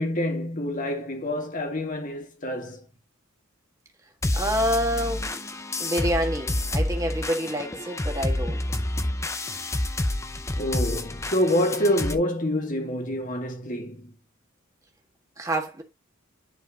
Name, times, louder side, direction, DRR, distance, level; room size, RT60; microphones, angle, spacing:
voice 1, 0.0-2.8 10.6-14.0, left 1 dB, 40° left, 2.0 m, -27 dB
sound 1, 4.2-12.1, left 1 dB, 15° left, 0.6 m, -29 dB
voice 2, 4.3-5.4 5.8-8.6 15.4-15.8, equal, 15° right, 1.7 m, -27 dB
10.5 x 4.5 x 2.9 m
head